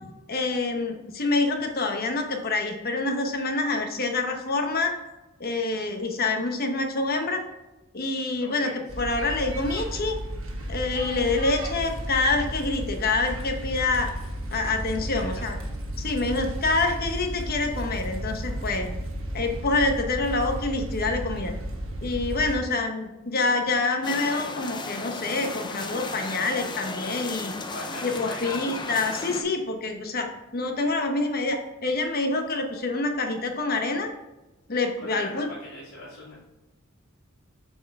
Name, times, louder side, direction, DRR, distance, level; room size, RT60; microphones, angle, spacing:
voice 1, 0.3-4.9 5.4-7.4 7.9-10.2 10.7-14.1 14.5-15.6 16.0-18.9 19.3-21.5 22.0-27.5 28.0-34.1 34.7-35.5, left 3 dB, 50° left, 4 dB, 0.9 m, -26 dB
voice 2, 8.4-9.1 15.0-15.4 27.7-28.7 35.0-36.4, left 1 dB, 75° left, -11 dB, 2.4 m, -40 dB
sound 1, 8.9-22.6, right 1 dB, 70° right, 1.3 m, -33 dB
sound 2, 24.0-29.4, left 3 dB, 20° left, 0.6 m, -35 dB
7.9 x 4.5 x 3.5 m, 1.0 s
head